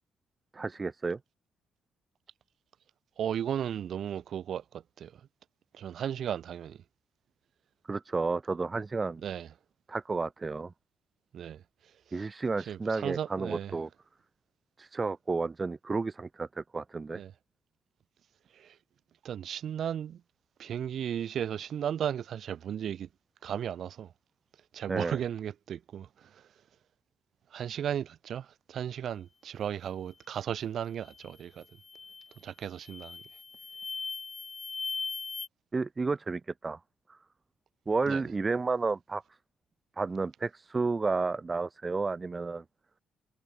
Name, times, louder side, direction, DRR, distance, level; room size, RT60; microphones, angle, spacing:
voice 1, 0.5-1.2 7.9-9.2 9.9-10.7 12.1-13.9 14.8-17.2 24.9-25.2 35.7-36.8 37.9-39.2 40.0-42.6, right 4 dB, 30° right, 0.9 m, -31 dB
voice 2, 3.2-5.1 5.7-6.8 9.2-9.5 11.3-11.6 12.7-13.8 17.1-17.3 18.6-18.7 19.2-20.2 20.6-23.1 23.4-24.1 24.7-26.4 27.5-31.6 32.4-33.2 38.1-38.2, right 9 dB, 65° right, 1.4 m, -35 dB
sound 1, 31.0-31.3 31.8-32.3 32.8-35.5, left 5 dB, 35° left, 1.5 m, -39 dB
cardioid pair, 90°, 0 cm